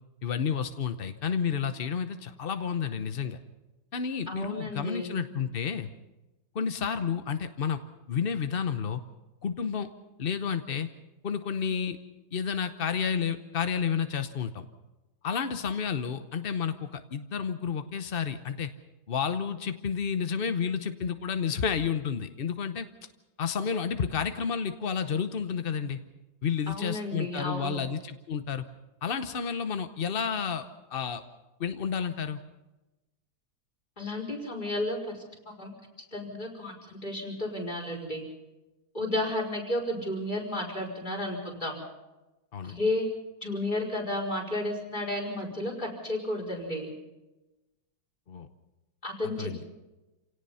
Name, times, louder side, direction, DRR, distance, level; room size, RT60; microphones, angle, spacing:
voice 1, 0.2-3.4 3.9-5.9 6.5-7.8 8.1-9.0 9.4-9.9 10.2-10.9 11.2-12.0 12.3-14.6 15.2-18.7 19.1-22.9 23.4-26.0 26.4-28.6 29.0-31.2 31.6-32.4 42.5-42.8 48.3-48.5 49.2-49.6, left 6 dB, 55° left, 9 dB, 0.6 m, -31 dB
voice 2, 4.3-5.1 26.7-27.8 34.0-35.7 36.1-38.2 38.9-41.8 42.6-43.1 43.4-46.9 49.0-49.7, left 1 dB, 20° left, -1 dB, 4.9 m, -32 dB
28.0 x 17.5 x 5.6 m, 1.1 s
omnidirectional pair, 2.2 m